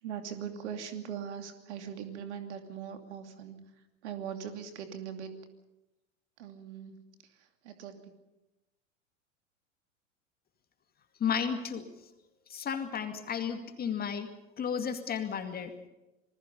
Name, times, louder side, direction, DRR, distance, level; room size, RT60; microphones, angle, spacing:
voice 1, 0.0-5.3 6.4-8.1, right 8 dB, 60° right, 7 dB, 2.8 m, -41 dB
voice 2, 11.2-11.9 12.5-14.3 14.6-15.7, left 7 dB, 25° left, 7 dB, 2.3 m, -33 dB
27.0 x 20.5 x 5.4 m, 0.99 s
figure-of-eight pair, 90°, 39 cm